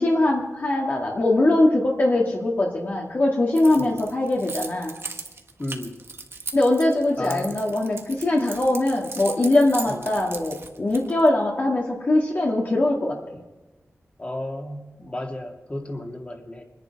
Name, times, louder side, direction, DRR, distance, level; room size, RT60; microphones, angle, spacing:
voice 1, 0.0-4.9 6.5-13.2, left 2 dB, 45° left, -2 dB, 2.1 m, -21 dB
Keys jangling, 3.6-11.3, right 4 dB, 60° right, 1.4 m, -37 dB
voice 2, 5.6-6.0 7.2-7.6 9.9-10.1 14.2-16.6, left 1 dB, 25° left, 2 dB, 2.3 m, -33 dB
26.0 x 10.5 x 4.7 m, 1.1 s
wide cardioid pair, 125°, 5 cm